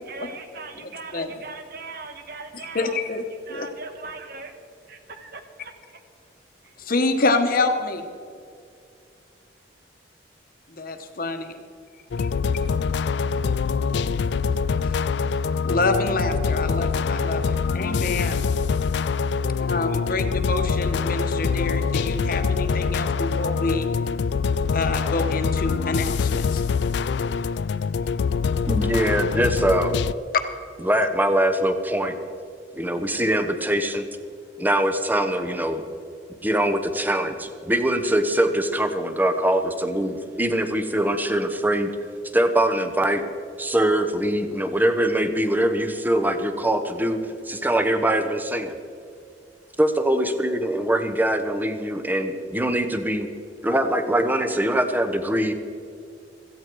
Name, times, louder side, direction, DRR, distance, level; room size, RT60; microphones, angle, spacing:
voice 1, 0.0-3.0 3.5-4.6 4.9-6.0 6.6-6.9, right 3 dB, 55° right, 6 dB, 1.5 m, -40 dB
voice 2, 2.7-3.2 3.5-3.7 6.8-8.0 10.7-11.5 12.2-12.3 14.8-15.0 15.6-18.4 19.6-23.9 24.7-26.6 30.3-30.4, left 3 dB, 50° left, 6 dB, 1.2 m, -26 dB
sound 1, 12.1-30.1, left 5 dB, 65° left, 0.4 m, -24 dB
voice 3, 28.7-30.0 30.8-32.2 32.8-34.1 34.6-35.8 36.4-41.9 42.3-43.2 43.6-47.2 47.5-48.7 49.8-53.3 53.6-55.5, right 1 dB, 10° right, 8 dB, 0.9 m, -23 dB
16.5 x 14.5 x 4.7 m, 2.4 s
head